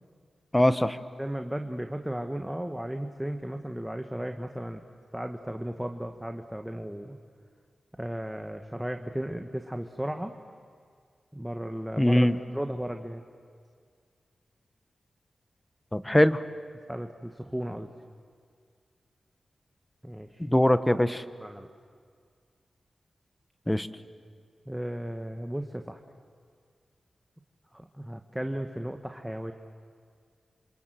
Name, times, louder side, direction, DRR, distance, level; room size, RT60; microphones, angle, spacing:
voice 1, 0.5-1.0 12.0-12.3 15.9-16.4 20.5-21.2 23.7-23.9, left 1 dB, 15° left, 12 dB, 1.2 m, -22 dB
voice 2, 1.2-4.8 5.1-7.2 8.0-10.3 11.3-12.3 12.5-13.2 16.9-17.9 20.0-20.5 21.4-21.7 24.7-26.0 27.7-29.5, equal, 5° right, 5 dB, 1.4 m, -35 dB
27.5 x 27.0 x 7.7 m, 2.1 s
cardioid pair, 45°, 0 cm